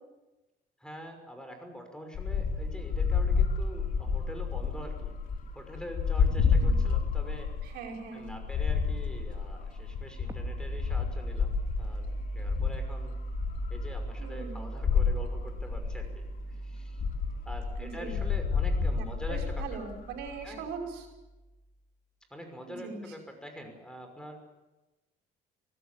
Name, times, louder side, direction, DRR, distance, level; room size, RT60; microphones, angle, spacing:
voice 1, 0.8-5.1 5.5-7.5 8.1-11.5 11.8-13.2 13.7-17.0 17.5-19.6 20.4-20.6 22.3-24.4, equal, 5° left, 5 dB, 5.9 m, -45 dB
sound 1, 2.1-7.7 8.0-12.9 13.3-14.3 14.6-16.4 17.0-20.4, left 5 dB, 55° left, 3.8 m, -29 dB
voice 2, 6.4-6.8 7.6-8.3 14.2-14.7 17.8-18.2 19.0-21.1 22.7-23.0, right 5 dB, 90° right, 3 dB, 5.3 m, -41 dB
sound 2, 10.3-21.6, right 2 dB, 20° right, 2.8 m, -40 dB
25.0 x 17.5 x 8.6 m, 1.1 s
cardioid pair, 110°, 17 cm